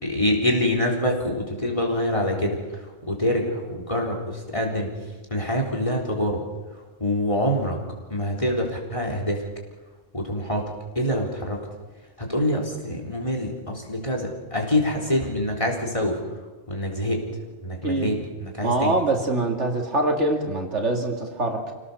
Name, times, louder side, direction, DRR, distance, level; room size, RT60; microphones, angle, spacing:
voice 1, 0.0-4.9 5.3-6.4 7.0-7.8 8.1-9.5 10.1-11.7 12.2-16.2 16.7-17.2 17.6-19.0, left 1 dB, 25° left, 1 dB, 3.9 m, -25 dB
voice 2, 18.6-21.7, right 2 dB, 80° right, 2 dB, 2.8 m, -24 dB
27.0 x 17.5 x 6.9 m, 1.2 s
omnidirectional pair, 1.2 m